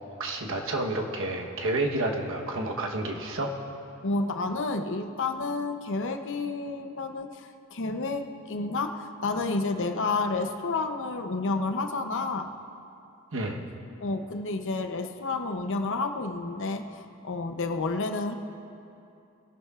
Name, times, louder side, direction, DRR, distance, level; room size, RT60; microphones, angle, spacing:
voice 1, 0.1-3.5 13.3-13.6, right 2 dB, 60° right, 2 dB, 1.1 m, -30 dB
voice 2, 4.0-12.5 14.0-18.4, left 3 dB, 60° left, 6 dB, 0.7 m, -30 dB
20.5 x 11.0 x 2.4 m, 2.7 s
head